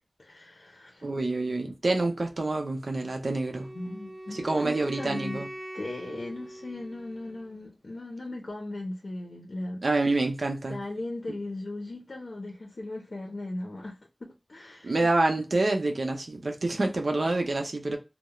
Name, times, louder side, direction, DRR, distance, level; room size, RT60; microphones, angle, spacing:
voice 1, 0.2-1.1 3.7-5.4 5.7-9.8 10.7-15.1 15.4-15.5, left 2 dB, 85° left, 0.6 m, -38 dB
voice 2, 1.0-3.7 4.3-5.5 9.8-10.8 14.8-18.0, right 2 dB, 85° right, 0.6 m, -27 dB
Wind instrument woodwind instrument, 3.4-7.5, right 1 dB, 30° right, 0.5 m, -43 dB
2.3 x 2.1 x 2.8 m
wide cardioid pair, 55°, 0 cm